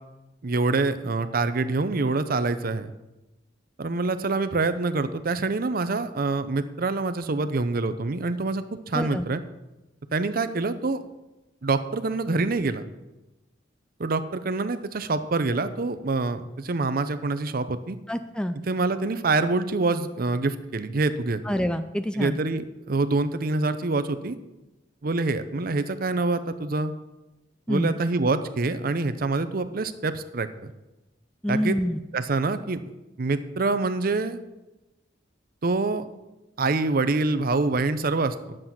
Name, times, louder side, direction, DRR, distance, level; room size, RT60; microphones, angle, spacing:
voice 1, 0.4-2.9 3.8-9.4 10.1-11.0 11.6-12.8 14.0-18.0 18.7-21.4 22.1-24.4 25.0-26.9 27.7-30.7 31.5-31.8 32.1-32.8 33.2-34.4 35.6-36.1 36.6-38.6, right 3 dB, 50° right, 11 dB, 0.6 m, -26 dB
voice 2, 8.9-9.2 18.1-18.6 21.4-22.4 27.7-27.9 31.4-32.0, equal, 5° left, 10 dB, 0.3 m, -27 dB
10.0 x 7.6 x 5.8 m, 1.0 s
head